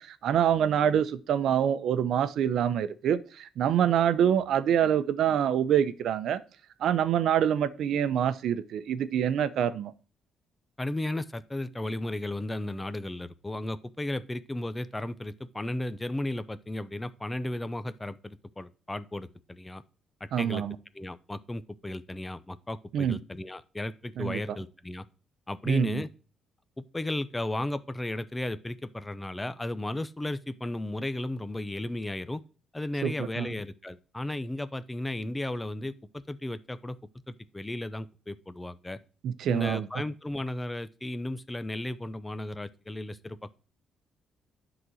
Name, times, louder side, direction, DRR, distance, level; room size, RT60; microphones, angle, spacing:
voice 1, 0.0-6.4 6.8-9.9 20.3-20.7 22.9-23.2 24.2-24.4 25.7-26.0 33.0-33.5 39.2-39.9, right 9 dB, 75° right, 0.7 m, -26 dB
voice 2, 10.8-19.8 20.4-20.6 20.9-25.0 25.5-26.1 26.9-32.4 32.7-37.0 37.3-39.0 39.5-43.6, left 1 dB, 15° left, 0.7 m, -34 dB
10.5 x 4.0 x 6.3 m
cardioid pair, 90°, 0 cm